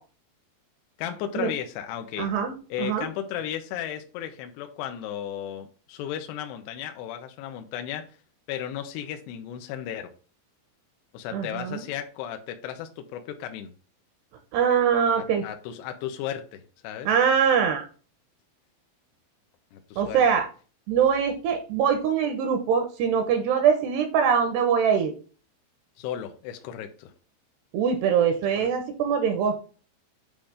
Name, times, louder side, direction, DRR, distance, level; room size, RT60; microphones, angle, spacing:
voice 1, 1.0-2.3 2.7-8.2 8.5-10.1 11.1-13.7 15.2-17.1 19.7-20.2 26.0-27.1 28.6-28.7, left 10 dB, 80° left, 2.6 m, -35 dB
voice 2, 2.2-3.1 11.3-11.8 14.5-15.5 17.1-17.9 20.0-20.5 20.9-25.1 27.7-29.5, right 7 dB, 75° right, 2.6 m, -23 dB
8.7 x 3.2 x 5.1 m
omnidirectional pair, 5.4 m